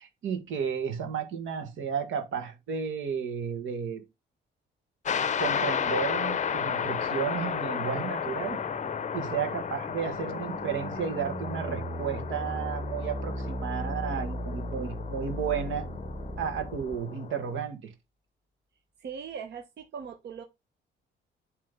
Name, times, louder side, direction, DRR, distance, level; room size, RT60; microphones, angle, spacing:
voice 1, 0.0-4.0 5.4-8.6 9.1-15.9 16.4-17.9, right 7 dB, 80° right, 1.7 m, -33 dB
sound 1, 5.0-17.6, left 7 dB, 35° left, 0.6 m, -33 dB
sound 2, 8.2-17.0, right 1 dB, 15° right, 1.4 m, -37 dB
voice 2, 19.0-20.4, right 7 dB, 60° right, 1.0 m, -40 dB
7.6 x 3.3 x 5.3 m
cardioid pair, 90°, 20 cm